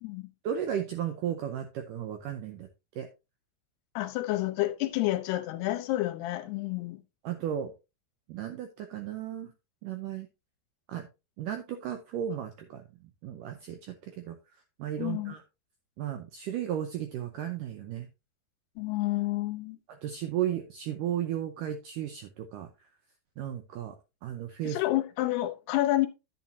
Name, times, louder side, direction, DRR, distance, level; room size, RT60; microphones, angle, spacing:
voice 1, 0.4-2.7 3.0-3.1 7.2-7.7 8.3-9.5 9.8-10.3 10.9-11.1 11.4-14.4 14.8-15.4 16.0-18.1 19.9-22.9 23.4-24.0 24.2-24.8, right 10 dB, 85° right, 1.9 m, -34 dB
voice 2, 4.0-7.0 15.0-15.3 18.8-19.8 24.7-26.1, left 16 dB, 80° left, 2.8 m, -29 dB
9.9 x 8.7 x 2.7 m
omnidirectional pair, 4.7 m